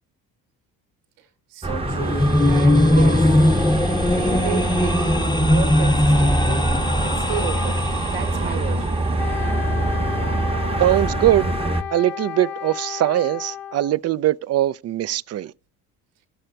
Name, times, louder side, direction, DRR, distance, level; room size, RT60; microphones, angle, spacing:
voice 1, 1.2-3.5 4.0-9.1, right 8 dB, 85° right, 1.0 m, -33 dB
sound 1, 1.6-11.8, right 2 dB, 15° right, 0.9 m, -24 dB
sound 2, 1.7-8.7, left 1 dB, 10° left, 0.6 m, -20 dB
Wind instrument woodwind instrument, 9.2-14.0, left 10 dB, 85° left, 0.7 m, -32 dB
voice 2, 10.8-11.5 11.9-15.5, right 12 dB, 40° right, 0.4 m, -21 dB
13.5 x 6.6 x 4.5 m
supercardioid pair, 70°, 39 cm